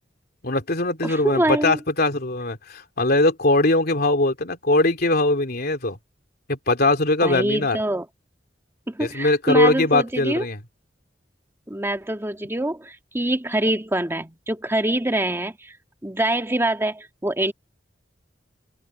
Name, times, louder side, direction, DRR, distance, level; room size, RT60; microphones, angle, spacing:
voice 1, 0.4-6.0 6.5-7.8 9.0-10.6, left 2 dB, 55° left, 3.1 m, -21 dB
voice 2, 1.0-1.8 7.2-8.1 8.9-10.5 11.7-15.7 16.0-17.5, right 1 dB, 15° right, 1.9 m, -25 dB
open air
head